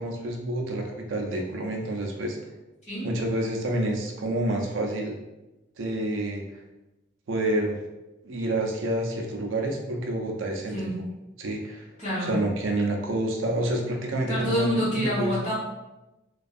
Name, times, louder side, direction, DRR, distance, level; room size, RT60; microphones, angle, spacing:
voice 1, 0.0-2.4 3.0-5.2 5.8-6.6 7.3-7.8 8.2-10.9 11.4-11.9 12.2-15.3, right 1 dB, 75° right, 1 dB, 0.4 m, -28 dB
voice 2, 12.0-12.3 14.3-15.5, equal, 35° left, -9 dB, 1.2 m, -27 dB
2.5 x 2.3 x 2.4 m, 1.0 s
head